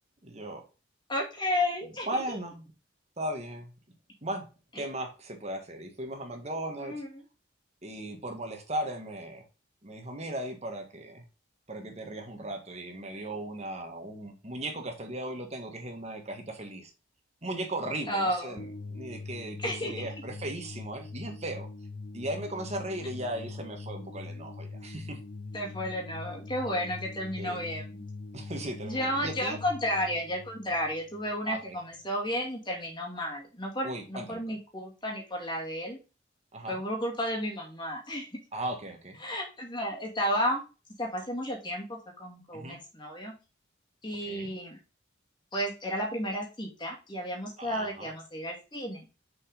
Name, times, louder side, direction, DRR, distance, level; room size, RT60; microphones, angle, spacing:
voice 1, 0.2-0.6 2.1-2.6 3.2-3.7 4.2-4.5 4.7-6.9 7.8-9.4 9.8-11.2 11.7-16.9 17.4-21.7 22.1-25.2 27.4-27.6 28.3-29.6 31.5-31.8 33.8-34.5 36.5-36.8 38.5-39.2 42.5-42.8 44.2-44.5 47.6-48.1, right 1 dB, 35° right, 4 dB, 1.7 m, -37 dB
voice 2, 1.1-2.2 4.8-4.9 6.8-7.1 18.1-18.6 19.6-20.1 25.5-28.0 28.8-36.0 36.7-38.3 39.2-40.6 41.0-43.3 44.0-44.8 45.5-49.1, equal, 25° left, 0 dB, 2.3 m, -32 dB
sound 1, 18.6-31.7, left 3 dB, 55° left, 0.8 m, -42 dB
6.3 x 5.4 x 3.7 m, 0.30 s
head